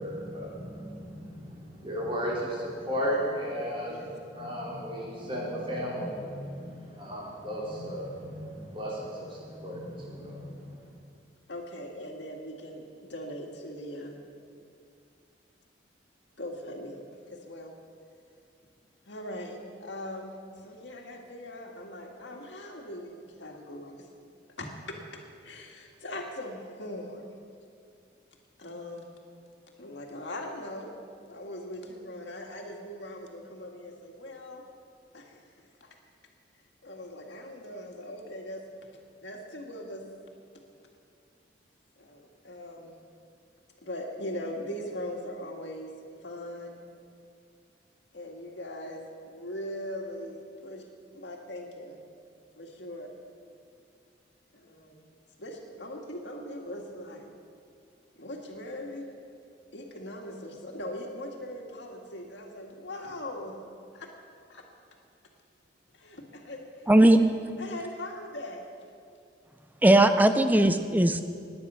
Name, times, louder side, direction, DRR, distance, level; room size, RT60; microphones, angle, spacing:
voice 1, 0.0-10.8, equal, 30° right, -5 dB, 4.0 m, -35 dB
voice 2, 11.5-14.2 16.4-17.7 19.1-24.1 24.6-25.0 25.4-27.4 28.6-29.0 29.8-30.9 31.3-34.6 35.1-35.9 36.8-38.6 39.2-40.0 42.0-43.0 43.8-45.9 46.2-46.8 48.1-50.9 51.1-52.0 52.6-53.1 54.5-55.0 55.4-57.3 58.2-59.1 59.7-63.6 63.9-64.1 64.5-64.6 65.9-66.9 67.6-68.6, left 1 dB, 75° left, 1 dB, 1.9 m, -40 dB
voice 3, 66.9-67.2 69.8-71.2, right 1 dB, 10° right, 9 dB, 0.5 m, -19 dB
18.5 x 9.6 x 5.6 m, 2.3 s
head